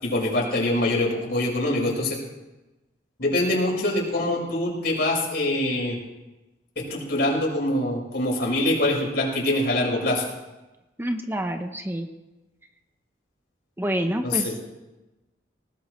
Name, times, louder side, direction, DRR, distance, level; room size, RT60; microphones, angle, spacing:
voice 1, 0.0-2.2 3.2-6.0 6.8-10.2 14.2-14.6, left 1 dB, 60° left, -2 dB, 5.4 m, -24 dB
voice 2, 11.0-12.1 13.8-14.6, right 1 dB, 15° right, 6 dB, 0.8 m, -27 dB
20.0 x 18.5 x 3.2 m, 1.0 s
head